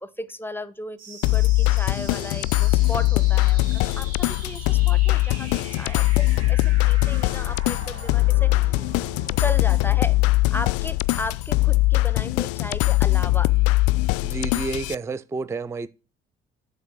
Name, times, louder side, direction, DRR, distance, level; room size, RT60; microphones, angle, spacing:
voice 1, 0.0-8.8 9.4-10.2 10.5-13.6, left 1 dB, 5° left, 0.8 m, -35 dB
sound 1, 1.0-12.0, right 4 dB, 60° right, 3.7 m, -43 dB
sound 2, 1.2-14.9, left 20 dB, 50° left, 0.4 m, -21 dB
voice 2, 14.2-15.9, right 4 dB, 10° right, 0.4 m, -30 dB
8.0 x 6.0 x 7.2 m
figure-of-eight pair, 50°, 31 cm